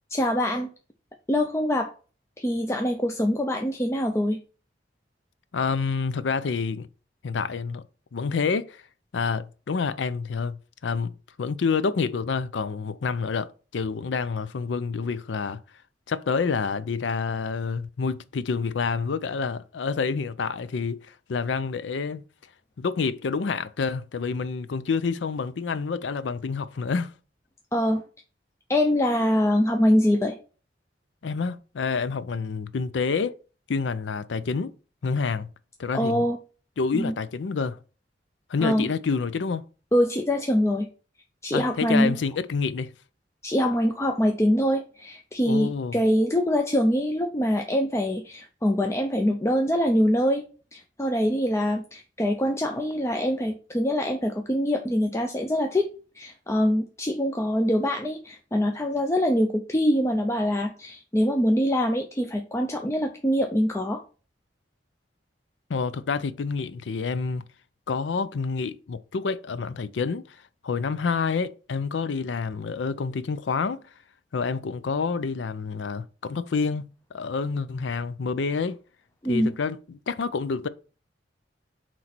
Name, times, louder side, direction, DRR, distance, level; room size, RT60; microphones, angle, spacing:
voice 1, 0.1-0.7 1.3-1.9 2.4-4.4 27.7-28.0 28.7-30.4 35.9-36.4 36.9-37.1 38.6-38.9 39.9-40.9 41.4-42.2 43.4-50.4 50.7-55.9 56.1-64.0 79.2-79.5, equal, 15° left, 0.5 m, -24 dB
voice 2, 5.5-6.9 7.2-7.8 8.1-8.8 9.1-11.1 11.4-15.6 16.1-22.2 22.8-27.1 31.2-33.3 33.7-34.7 35.0-35.5 35.8-36.3 36.8-37.8 38.5-39.6 41.5-42.9 45.4-46.0 65.7-67.4 67.9-70.4 70.6-73.8 74.3-78.8 79.3-80.7, left 5 dB, 80° left, 0.5 m, -28 dB
7.8 x 3.2 x 4.3 m
head